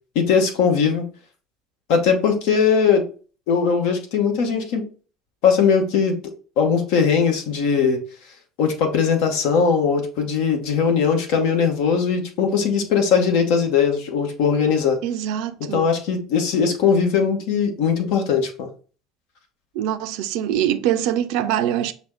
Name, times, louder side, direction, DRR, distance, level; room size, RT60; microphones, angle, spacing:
voice 1, 0.1-1.1 1.9-3.0 3.5-4.9 5.4-6.2 6.6-8.0 8.6-15.0 15.6-18.7, left 6 dB, 60° left, 0.9 m, -19 dB
voice 2, 15.0-15.9 19.7-21.9, right 11 dB, 60° right, 0.4 m, -23 dB
6.0 x 2.0 x 3.7 m
figure-of-eight pair, 65°, 0 cm